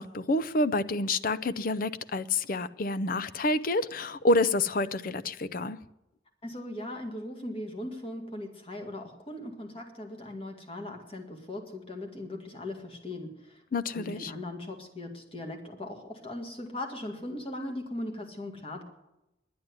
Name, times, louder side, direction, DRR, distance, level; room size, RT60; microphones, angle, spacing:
voice 1, 0.0-5.8 13.7-14.3, left 2 dB, 45° left, 0.5 m, -28 dB
voice 2, 6.4-13.6 13.9-18.8, left 1 dB, 30° left, 2.0 m, -39 dB
11.0 x 9.4 x 9.6 m
head